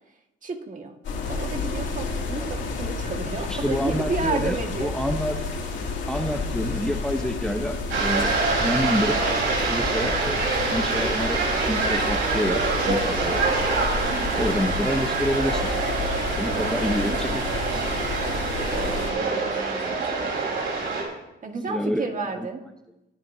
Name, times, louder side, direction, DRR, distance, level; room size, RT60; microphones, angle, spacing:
voice 1, 0.4-0.9 1.3-4.9 13.9-14.3 16.4-17.4 18.7-18.9 19.2-20.4 21.4-22.6, right 4 dB, 40° right, 3 dB, 1.8 m, -32 dB
sound 1, 1.0-19.1, left 4 dB, 70° left, 2.5 m, -31 dB
voice 2, 3.5-5.4 6.1-9.2 9.7-13.4 14.4-15.7 16.3-17.4 21.7-22.1 22.3-22.5, equal, 5° left, 5 dB, 0.9 m, -28 dB
sound 2, 7.9-21.0, right 3 dB, 85° right, 4.3 m, -25 dB
21.0 x 9.3 x 2.8 m, 0.91 s
cardioid pair, 90°, 20 cm